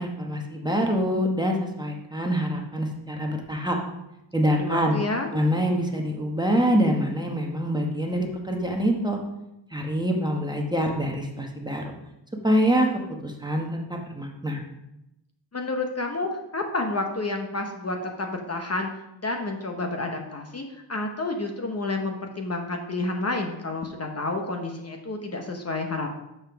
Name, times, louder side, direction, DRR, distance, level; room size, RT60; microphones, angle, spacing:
voice 1, 0.0-3.8 4.3-4.9 5.3-9.2 9.7-11.9 12.4-12.9 13.2-14.6, equal, 10° right, 1 dB, 1.0 m, -25 dB
voice 2, 4.6-5.3 15.5-18.9 19.2-26.1, left 2 dB, 35° left, 3 dB, 0.9 m, -30 dB
6.8 x 5.7 x 5.8 m, 0.88 s
wide cardioid pair, 130°, 45 cm